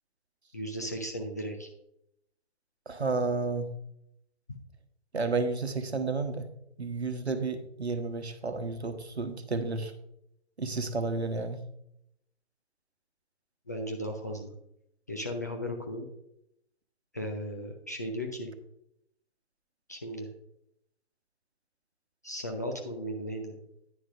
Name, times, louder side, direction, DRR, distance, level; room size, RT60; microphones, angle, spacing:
voice 1, 0.5-1.7 13.7-14.5 15.1-16.1 17.1-18.5 19.9-20.3 22.2-23.5, equal, 15° left, 2 dB, 0.4 m, -36 dB
voice 2, 2.9-3.7 5.1-6.5 6.8-9.9 10.6-11.6, right 3 dB, 75° right, 9 dB, 1.1 m, -31 dB
9.8 x 9.8 x 2.5 m, 0.78 s
figure-of-eight pair, 130°, 33 cm